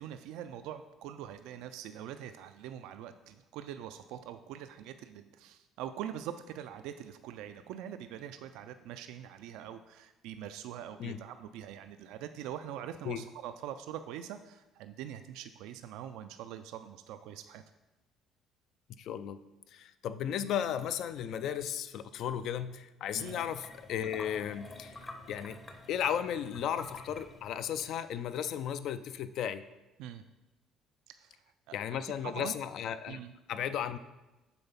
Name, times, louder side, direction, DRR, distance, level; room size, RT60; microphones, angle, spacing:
voice 1, 0.0-17.6 23.1-23.4 30.0-30.2 31.1-31.8 32.2-32.5 33.1-33.3, right 10 dB, 90° right, 9 dB, 0.3 m, -43 dB
voice 2, 19.0-19.4 19.7-25.0 25.3-25.6 25.9-29.6 31.7-33.2 33.5-34.0, left 9 dB, 65° left, 12 dB, 0.4 m, -35 dB
sound 1, 23.1-28.2, left 2 dB, 25° left, 0.7 m, -48 dB
6.9 x 3.9 x 5.7 m, 1.1 s
cardioid pair, 125°, 0 cm